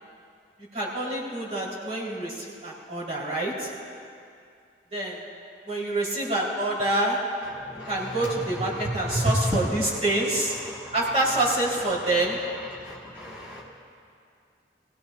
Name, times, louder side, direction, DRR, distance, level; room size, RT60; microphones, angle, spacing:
voice 1, 0.7-3.7 4.9-5.2 5.7-7.2 7.9-10.6 10.9-12.4, right 1 dB, 40° right, -6 dB, 4.2 m, -27 dB
voice 2, 7.5-10.0 10.5-11.0 12.7-13.6, equal, 10° right, -8 dB, 1.9 m, -31 dB
24.5 x 17.0 x 2.7 m, 2.4 s
head